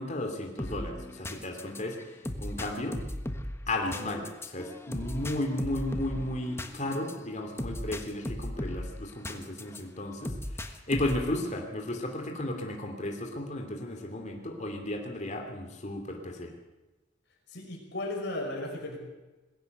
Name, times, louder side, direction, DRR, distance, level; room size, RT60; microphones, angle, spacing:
voice 1, 0.0-2.0 2.4-3.0 3.7-16.5, left 1 dB, 40° left, 3 dB, 2.9 m, -34 dB
sound 1, 0.6-9.8 10.2-11.4, left 1 dB, 15° left, 1.4 m, -37 dB
voice 2, 17.5-19.0, left 2 dB, 60° left, -1 dB, 5.9 m, -35 dB
21.0 x 16.5 x 8.0 m, 1.1 s
head